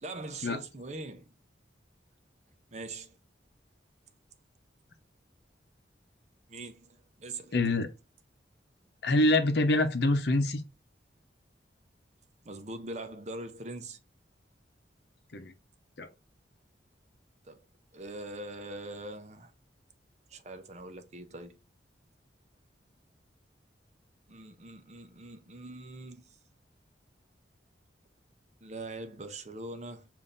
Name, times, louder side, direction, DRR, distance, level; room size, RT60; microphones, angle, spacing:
voice 1, 0.0-1.3 2.7-3.2 6.5-7.6 12.5-14.0 17.5-17.6 17.9-19.5 20.3-21.6 24.3-26.3 28.6-30.1, right 2 dB, 40° right, 0.6 m, -42 dB
voice 2, 7.5-7.9 9.0-10.6 15.3-15.5 16.0-16.1, left 2 dB, 65° left, 0.8 m, -25 dB
7.0 x 2.6 x 2.5 m
head